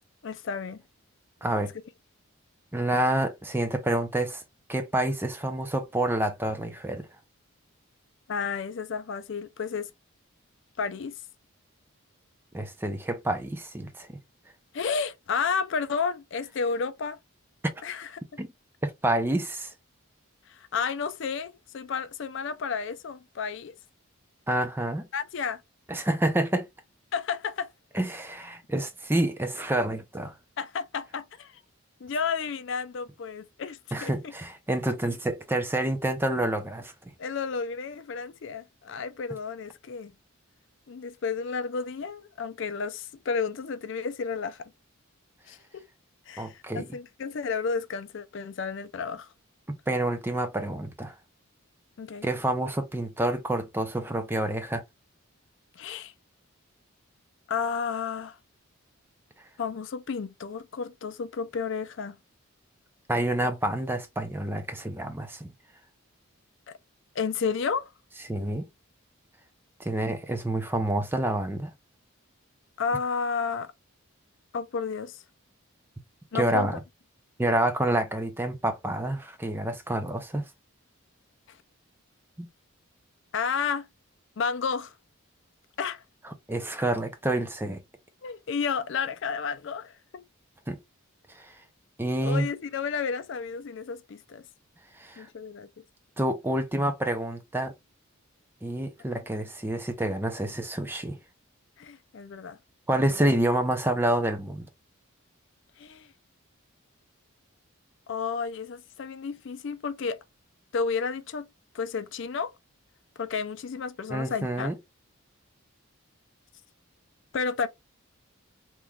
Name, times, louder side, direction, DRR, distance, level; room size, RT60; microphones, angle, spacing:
voice 1, 0.2-0.8 8.3-9.9 10.8-11.1 14.7-17.2 17.8-18.1 20.5-23.7 25.1-25.6 27.1-27.7 30.6-31.6 32.0-34.3 37.2-40.1 40.9-44.7 45.5-45.9 46.3-49.3 52.0-52.3 55.8-56.1 57.5-58.4 59.6-62.2 67.2-67.9 72.8-73.7 74.5-75.2 76.3-76.7 81.5-81.6 83.3-83.9 84.4-84.9 85.8-86.0 88.2-90.2 92.2-94.4 95.2-95.7 101.8-102.6 102.9-103.2 105.8-106.1 108.1-110.2 110.7-111.5 111.7-112.5 113.2-114.7 117.3-117.7, left 5 dB, 55° left, 0.4 m, -32 dB
voice 2, 1.4-1.7 2.7-4.4 4.7-7.1 12.5-14.2 18.4-18.5 18.8-19.7 24.5-25.1 25.9-26.7 27.9-30.3 33.9-36.9 46.4-46.9 49.7-51.2 52.2-54.8 63.1-65.5 68.3-68.7 69.8-71.7 76.3-76.8 77.4-80.5 82.4-82.5 86.5-87.8 90.7-90.8 91.3-91.6 92.0-92.5 94.9-95.3 96.2-97.7 98.6-101.2 102.9-104.7 114.1-114.8, right 1 dB, 10° right, 0.5 m, -28 dB
3.5 x 3.0 x 2.3 m
head